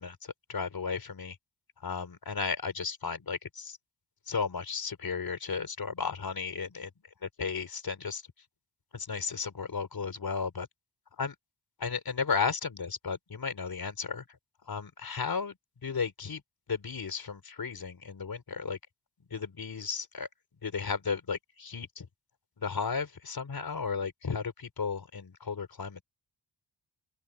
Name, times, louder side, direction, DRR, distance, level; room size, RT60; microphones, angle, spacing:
voice 1, 0.0-1.4 1.8-3.8 4.3-6.9 7.2-8.2 8.9-10.7 11.2-11.3 11.8-14.2 14.7-15.6 15.8-16.4 16.7-18.8 19.3-20.3 20.6-22.1 22.6-26.0, left 5 dB, 50° left, 4.0 m, -34 dB
open air
cardioid pair, 65°, 44 cm